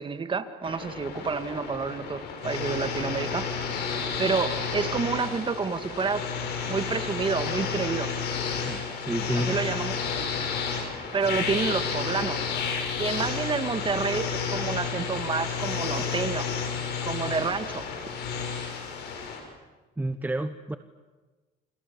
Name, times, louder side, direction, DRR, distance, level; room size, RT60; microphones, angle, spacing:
voice 1, 0.0-3.7 4.2-6.3 6.7-8.1 9.3-10.4 10.9-12.4 13.0-16.5 17.0-17.9, right 5 dB, 30° right, 9 dB, 2.1 m, -29 dB
sound 1, 0.6-19.4, left 6 dB, 80° left, 6.5 m, -31 dB
voice 2, 8.6-9.6 20.0-20.8, right 2 dB, 10° right, 9 dB, 1.1 m, -30 dB
29.5 x 26.0 x 7.2 m, 1.2 s
cardioid pair, 110°, 17 cm